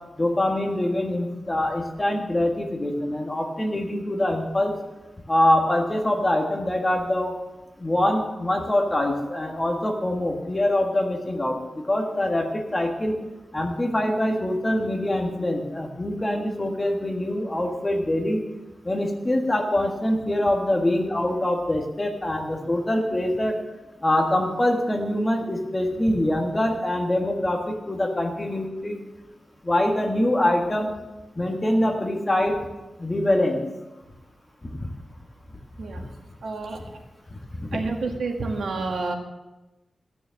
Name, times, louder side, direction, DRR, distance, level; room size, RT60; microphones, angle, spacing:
voice 1, 0.1-4.7 5.3-7.3 7.8-13.1 13.5-18.4 18.8-23.6 24.0-29.0 29.6-30.9 31.4-32.6 33.0-33.6 34.6-34.9 36.8-36.9 37.5-37.8, left 1 dB, 15° left, 2 dB, 1.6 m, -24 dB
voice 2, 36.4-36.8 37.7-39.2, right 3 dB, 75° right, 3 dB, 1.7 m, -29 dB
14.5 x 7.0 x 7.5 m, 1.1 s
wide cardioid pair, 175°, 0 cm